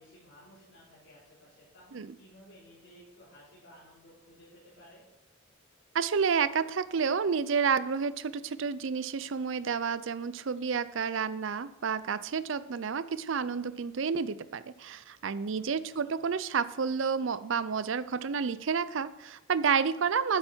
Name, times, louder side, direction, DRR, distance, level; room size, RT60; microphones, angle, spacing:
voice 1, 0.0-5.0 15.4-16.2, equal, 65° left, -9 dB, 4.7 m, -56 dB
voice 2, 5.9-20.4, right 6 dB, 65° right, 15 dB, 0.5 m, -30 dB
11.0 x 9.0 x 4.5 m, 0.94 s
head